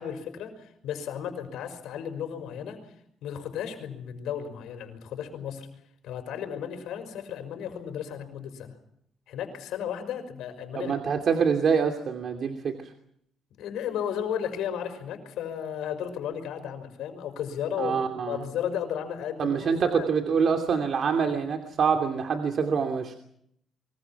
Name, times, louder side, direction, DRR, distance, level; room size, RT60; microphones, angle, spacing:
voice 1, 0.0-2.8 3.2-5.7 6.0-8.7 9.3-10.9 13.6-20.1, left 9 dB, 85° left, 7 dB, 5.6 m, -34 dB
voice 2, 10.7-12.8 17.8-18.4 19.4-23.1, right 6 dB, 55° right, 4 dB, 2.8 m, -25 dB
26.5 x 24.0 x 6.1 m, 0.71 s
cardioid pair, 90°, 0 cm